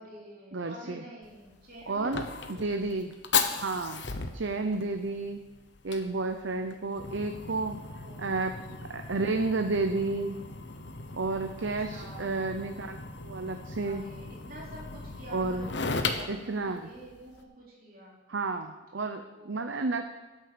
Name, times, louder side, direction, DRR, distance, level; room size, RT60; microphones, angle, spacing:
voice 1, 0.0-2.8 6.5-7.0 8.0-8.5 11.6-12.3 13.8-18.1 19.2-19.8, equal, 45° right, -5 dB, 4.2 m, -48 dB
voice 2, 0.5-1.0 1.9-2.2 2.5-3.1 3.5-4.0 4.3-5.4 5.8-7.8 8.2-8.5 8.9-10.4 11.1-14.0 15.3-15.7 16.3-16.9 18.3-20.0, right 3 dB, 75° right, 6 dB, 0.8 m, -31 dB
Fire, 1.2-17.4, left 4 dB, 65° left, 1.0 m, -37 dB
12.5 x 7.4 x 6.8 m, 1.2 s
head